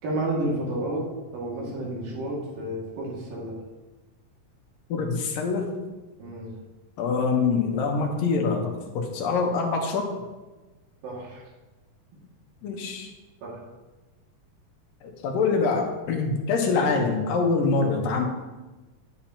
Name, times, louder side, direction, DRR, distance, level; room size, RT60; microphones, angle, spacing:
voice 1, 0.0-3.5 6.2-6.5 11.0-11.4 12.7-12.8 13.4-13.6, right 1 dB, 90° right, -4 dB, 3.9 m, -31 dB
voice 2, 4.9-5.7 7.0-10.1 12.6-13.1 15.0-18.2, left 4 dB, 90° left, 2 dB, 2.8 m, -25 dB
10.5 x 8.5 x 2.9 m, 1.2 s
omnidirectional pair, 3.9 m